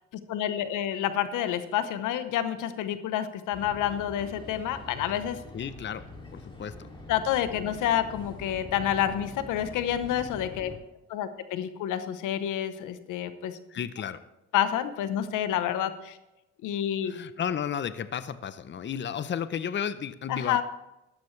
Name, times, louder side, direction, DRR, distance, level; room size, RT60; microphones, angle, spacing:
voice 1, 0.3-5.4 7.1-10.7 11.1-13.6 14.5-16.2 16.6-17.1 20.3-20.6, left 10 dB, 90° left, 11 dB, 0.9 m, -29 dB
sound 1, 3.5-10.8, left 1 dB, 15° left, 2.6 m, -44 dB
voice 2, 5.5-6.0 6.3-6.7 13.7-14.2 17.1-20.6, left 8 dB, 40° left, 14 dB, 0.6 m, -33 dB
13.0 x 11.5 x 3.2 m, 0.95 s
cardioid pair, 90°, 30 cm